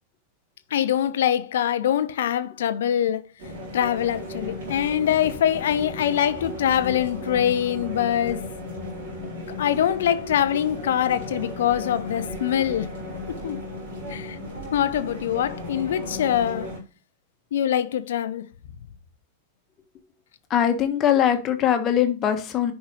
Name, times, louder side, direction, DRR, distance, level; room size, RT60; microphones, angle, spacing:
voice 1, 0.7-3.3 3.7-8.4 9.6-12.9 13.4-13.6 14.1-14.4 14.7-16.7 17.5-18.5, left 10 dB, 60° left, 0.7 m, -24 dB
sound 1, 3.4-16.8, left 1 dB, 55° right, 3.9 m, -35 dB
voice 2, 20.5-22.7, left 9 dB, 30° left, 1.4 m, -21 dB
10.5 x 5.5 x 3.1 m
figure-of-eight pair, 90°, 0 cm